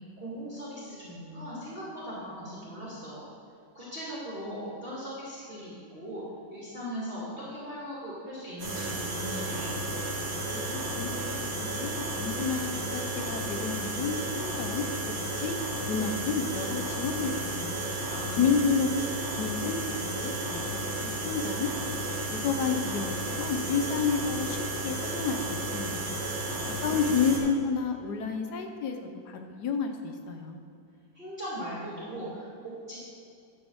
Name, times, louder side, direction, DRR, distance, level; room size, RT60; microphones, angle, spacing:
voice 1, 0.2-3.3 3.7-6.2 6.5-9.7 18.1-18.5 26.5-27.0 31.1-33.0, equal, 30° right, -8 dB, 2.2 m, -39 dB
sound 1, 8.6-27.4, right 1 dB, 50° right, 2.0 m, -33 dB
voice 2, 10.5-14.9 15.4-15.6 15.9-17.9 18.4-18.9 19.4-20.6 21.0-21.7 22.1-25.4 25.7-26.1 26.6-30.6, left 5 dB, 65° left, 5 dB, 1.2 m, -30 dB
11.0 x 4.7 x 6.3 m, 2.5 s
omnidirectional pair, 2.0 m